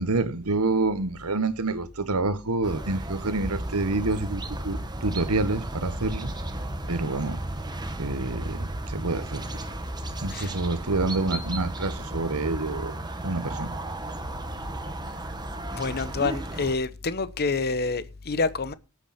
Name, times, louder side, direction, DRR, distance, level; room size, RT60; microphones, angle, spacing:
voice 1, 0.0-6.3 6.9-7.4 8.0-9.4 10.2-13.0 13.2-13.8, right 3 dB, 80° right, 1.3 m, -27 dB
sound 1, 2.6-16.7, right 1 dB, 20° right, 1.4 m, -34 dB
voice 2, 15.7-18.7, left 4 dB, 45° left, 0.9 m, -27 dB
18.0 x 8.3 x 4.3 m
head